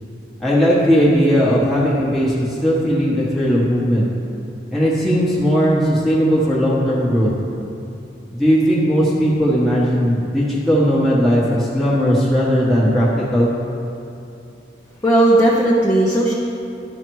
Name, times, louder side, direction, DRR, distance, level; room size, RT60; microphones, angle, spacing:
voice 1, 0.4-4.0 4.7-7.3 8.3-13.5, equal, ahead, -8 dB, 1.2 m, -17 dB
voice 2, 15.0-16.3, right 1 dB, 15° left, -5 dB, 0.7 m, -15 dB
11.5 x 5.7 x 4.7 m, 2.6 s
head